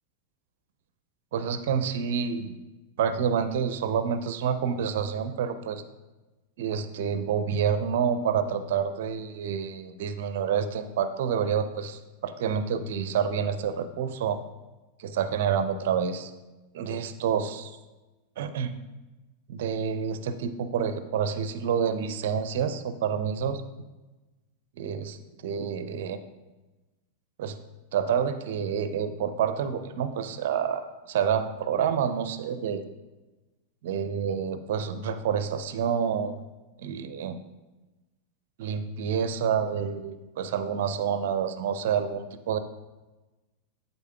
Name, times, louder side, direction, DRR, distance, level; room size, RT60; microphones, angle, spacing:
voice 1, 1.3-2.5 3.0-5.8 6.6-14.4 15.0-16.3 16.7-17.8 18.4-18.8 19.5-23.6 24.8-25.2 25.4-26.2 27.4-27.6 27.9-32.8 33.8-36.4 36.8-37.4 38.6-42.6, right 7 dB, 55° right, 10 dB, 0.4 m, -28 dB
11.5 x 4.0 x 2.3 m, 1.1 s
figure-of-eight pair, 90°, 0 cm